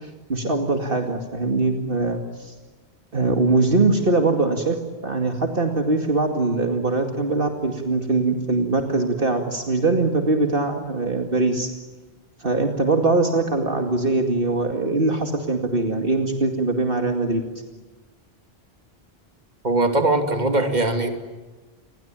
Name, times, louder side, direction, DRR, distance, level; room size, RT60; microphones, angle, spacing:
voice 1, 0.0-2.5 3.1-11.7 12.4-17.4, right 3 dB, 60° right, 4 dB, 2.6 m, -22 dB
voice 2, 19.6-21.1, right 2 dB, 45° right, 6 dB, 2.9 m, -20 dB
29.0 x 22.5 x 9.0 m, 1.2 s
omnidirectional pair, 1.1 m